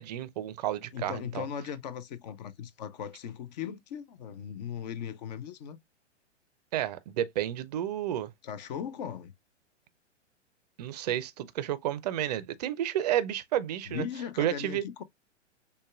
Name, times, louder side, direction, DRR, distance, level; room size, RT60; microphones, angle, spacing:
voice 1, 0.0-1.4 6.7-8.3 10.8-14.0 14.4-14.8, right 11 dB, 35° right, 0.5 m, -31 dB
voice 2, 0.9-5.8 8.4-9.3 13.9-15.0, left 8 dB, 35° left, 0.5 m, -38 dB
6.3 x 2.2 x 2.3 m
figure-of-eight pair, 110°, 36 cm